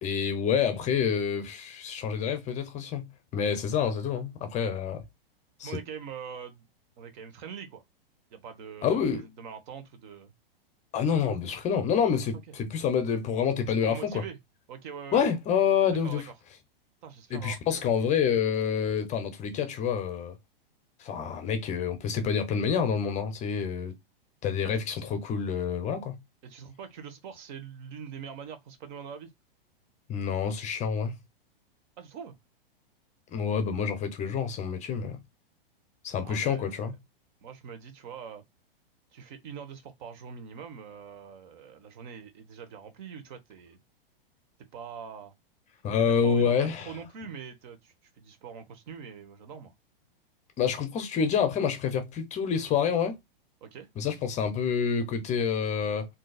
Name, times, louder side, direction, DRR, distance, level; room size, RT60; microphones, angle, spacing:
voice 1, 0.0-3.1 3.3-5.0 5.6-5.7 8.8-9.2 10.9-14.2 15.1-16.3 17.3-20.3 21.0-23.9 24.4-26.2 30.1-31.1 33.3-35.2 36.0-36.9 45.8-46.9 50.6-53.2 54.0-56.1, left 7 dB, 25° left, 0.7 m, -27 dB
voice 2, 5.6-6.7 7.0-7.8 8.3-10.3 12.5-12.6 13.7-14.4 14.7-15.2 16.0-16.3 17.0-18.0 26.4-29.3 32.0-32.3 36.2-37.0 37.4-38.4 39.1-43.8 44.6-45.3 46.0-49.7 53.6-53.9, right 7 dB, 50° right, 1.1 m, -43 dB
3.9 x 2.7 x 2.3 m
hypercardioid pair, 130°, 29 cm